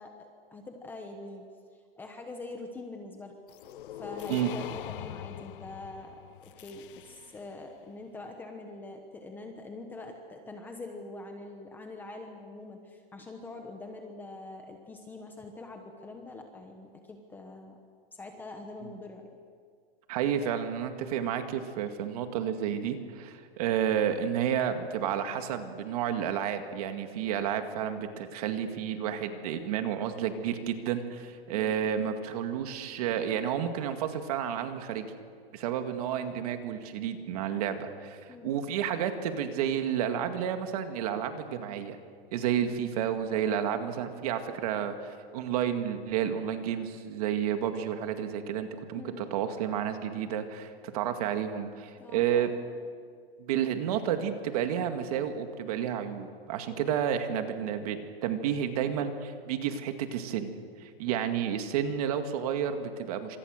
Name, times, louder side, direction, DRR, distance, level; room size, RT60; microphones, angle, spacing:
voice 1, 0.0-1.4 1.7-3.3 3.9-17.8 18.1-19.3 31.5-31.7 38.3-38.5 42.5-42.8 49.0-49.2 52.0-52.5 56.7-56.9 61.1-61.3, left 2 dB, 5° left, 3 dB, 1.1 m, -44 dB
sound 1, 3.5-7.5, left 12 dB, 60° left, 0.8 m, -42 dB
voice 2, 20.1-35.1 35.5-42.0 42.3-52.5 53.4-60.5 60.8-63.4, right 9 dB, 40° right, 7 dB, 2.1 m, -31 dB
29.0 x 26.0 x 6.6 m, 2.1 s
supercardioid pair, 175°, 30 cm